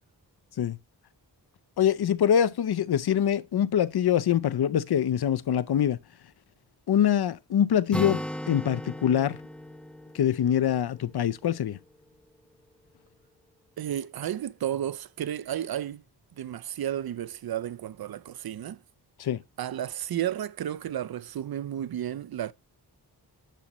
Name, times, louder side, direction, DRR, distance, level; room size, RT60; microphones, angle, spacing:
voice 1, 1.8-6.0 6.9-9.4 10.1-11.8 19.2-19.4, left 9 dB, 65° left, 0.6 m, -24 dB
Acoustic guitar, 7.9-11.6, left 1 dB, 5° left, 0.7 m, -37 dB
voice 2, 13.8-16.0 16.4-18.8 19.6-22.5, right 11 dB, 60° right, 0.5 m, -32 dB
10.5 x 7.2 x 2.9 m
wide cardioid pair, 75°, 41 cm